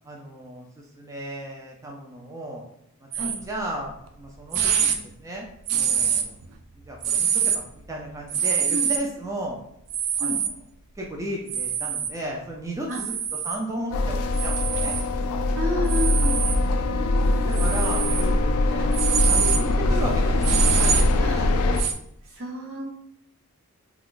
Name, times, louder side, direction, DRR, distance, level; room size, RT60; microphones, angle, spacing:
voice 1, 0.1-2.6 3.0-6.3 6.9-9.6 10.2-10.3 11.0-13.1 13.4-14.9 16.0-16.1 16.6-16.8 17.5-21.1 21.3-21.5, right 1 dB, 15° right, -2 dB, 0.4 m, -35 dB
sound 1, 3.1-3.4 4.1-4.2 4.5-5.0 5.7-6.5 7.0-7.6 8.3-9.0 9.9-10.5 11.5-12.1 12.9-13.6 14.4-15.0 15.9-16.6 17.5-18.2 18.7-21.9, right 8 dB, 85° right, 0.4 m, -25 dB
sound 2, 13.9-21.8, left 2 dB, 75° left, 0.3 m, -22 dB
voice 2, 15.5-16.4 21.2-21.4 22.3-22.9, left 1 dB, 65° right, -1 dB, 0.8 m, -30 dB
2.4 x 2.3 x 3.7 m, 0.75 s
head